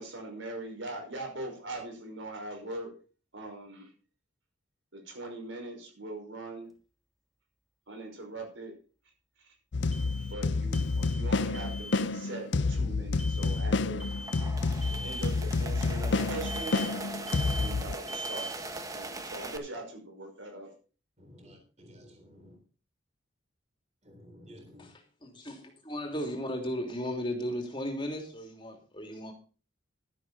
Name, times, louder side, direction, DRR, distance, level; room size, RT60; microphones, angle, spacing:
voice 1, 0.0-2.9 3.3-3.9 4.9-6.7 7.9-8.7 9.4-9.5 10.2-14.1 14.9-16.8 17.6-18.5 18.9-20.7, right 2 dB, 70° right, 5.5 m, -41 dB
sound 1, 6.7-6.8 9.9-10.5 10.7-11.3 11.5-12.0 13.2-13.7 14.0-14.5 14.8-15.3 16.5-17.0 17.3-17.8 18.1-18.6, right 1 dB, ahead, 1.4 m, -41 dB
sound 2, 9.7-18.0, left 3 dB, 60° left, 0.5 m, -29 dB
sound 3, 14.0-19.6, right 2 dB, 15° right, 1.1 m, -40 dB
voice 2, 21.2-22.6 24.0-24.9, equal, 35° right, 3.7 m, -53 dB
voice 3, 25.2-29.3, equal, 25° left, 3.2 m, -35 dB
12.5 x 11.0 x 4.2 m
head